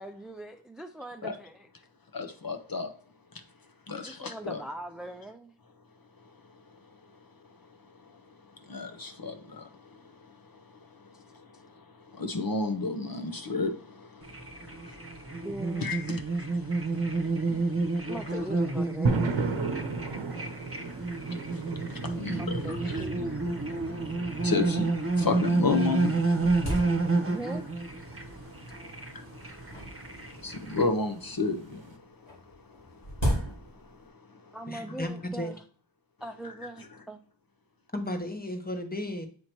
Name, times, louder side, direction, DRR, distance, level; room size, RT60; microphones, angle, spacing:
voice 1, 0.0-1.7 4.1-5.5 11.1-11.2 15.4-16.0 18.1-19.5 22.4-23.3 27.2-27.6 34.5-35.6 36.2-37.2, right 1 dB, ahead, 0.4 m, -41 dB
voice 2, 2.1-2.9 3.9-4.6 8.7-9.6 12.2-13.7 15.8-16.2 22.1-23.0 24.4-24.9 25.2-26.1 30.4-31.8, left 4 dB, 50° left, 0.7 m, -30 dB
sound 1, 14.2-30.8, right 3 dB, 30° right, 1.0 m, -30 dB
sound 2, 19.1-32.0, right 3 dB, 70° right, 0.8 m, -36 dB
sound 3, 23.8-23.9 24.6-24.7 25.3-25.4 25.8-27.5 28.3-28.7 29.6-31.0 32.2-34.1, equal, 90° left, 3.0 m, -34 dB
voice 3, 34.7-35.5 37.9-39.3, left 1 dB, 20° left, 1.0 m, -34 dB
7.8 x 2.8 x 4.5 m
wide cardioid pair, 45°, 46 cm